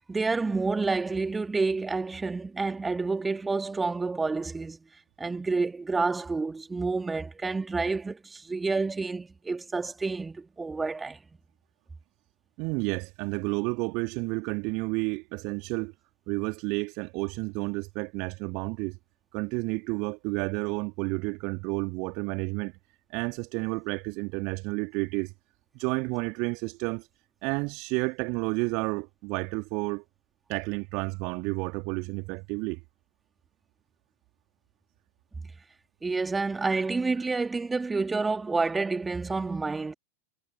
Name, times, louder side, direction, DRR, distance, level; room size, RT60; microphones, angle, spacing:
voice 1, 0.1-4.8 5.2-11.2 36.0-39.9, right 3 dB, 10° right, 2.2 m, -29 dB
voice 2, 12.6-15.9 16.3-19.0 19.3-22.7 23.1-25.3 25.7-27.1 27.4-30.0 30.5-32.8, right 30 dB, 45° right, 2.4 m, -31 dB
figure-of-eight pair, 90°, 0 cm